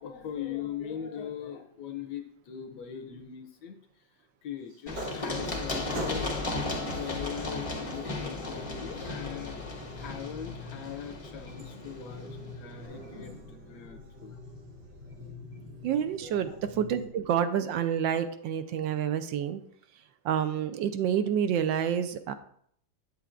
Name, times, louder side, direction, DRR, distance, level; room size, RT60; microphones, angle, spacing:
voice 1, 0.0-3.8 4.4-6.3 6.6-9.6 10.0-14.4 16.2-16.6, left 8 dB, 70° left, 5 dB, 1.1 m, -40 dB
sound 1, 4.7-5.6 5.9-6.6 7.7-17.1, left 1 dB, 55° right, 2.1 m, -44 dB
Run, 4.9-12.5, left 2 dB, 40° left, 0.5 m, -35 dB
voice 2, 15.8-19.6 20.2-22.3, right 9 dB, 75° right, 10 dB, 1.2 m, -28 dB
8.0 x 8.0 x 2.4 m, 0.64 s
omnidirectional pair, 2.2 m